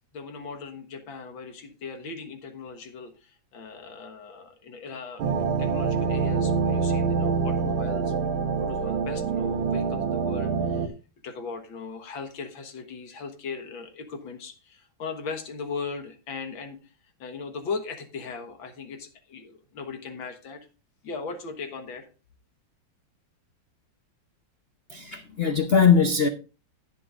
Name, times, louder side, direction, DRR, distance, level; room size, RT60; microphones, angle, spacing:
voice 1, 0.1-8.3 8.6-10.9 11.2-16.8 17.2-20.7 21.0-22.1, left 5 dB, 80° left, 2.2 m, -38 dB
sound 1, 5.2-10.9, right 5 dB, 85° right, 1.8 m, -26 dB
voice 2, 24.9-26.3, left 6 dB, 55° left, 0.7 m, -20 dB
18.0 x 7.0 x 2.5 m
omnidirectional pair, 2.1 m